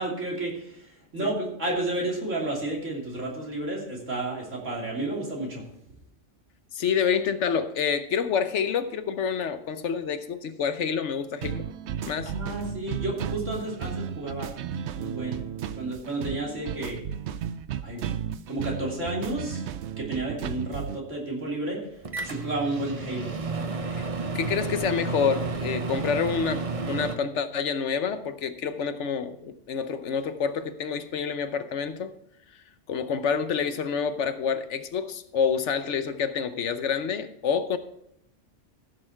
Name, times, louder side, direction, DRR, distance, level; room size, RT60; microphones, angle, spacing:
voice 1, 0.0-5.6 12.2-14.5 14.9-15.4 15.7-17.0 17.8-18.0 18.5-19.6 20.0-23.4, right 2 dB, 90° right, -3 dB, 3.3 m, -31 dB
voice 2, 6.7-11.7 12.1-12.3 23.9-24.0 24.3-32.1 32.9-37.8, left 6 dB, 75° left, 10 dB, 1.1 m, -28 dB
sound 1, 11.4-21.0, right 8 dB, 70° right, 0.8 m, -34 dB
Microwave oven, 22.0-27.2, right 4 dB, 35° right, 0.8 m, -31 dB
15.0 x 6.8 x 4.5 m, 0.74 s
omnidirectional pair, 1.2 m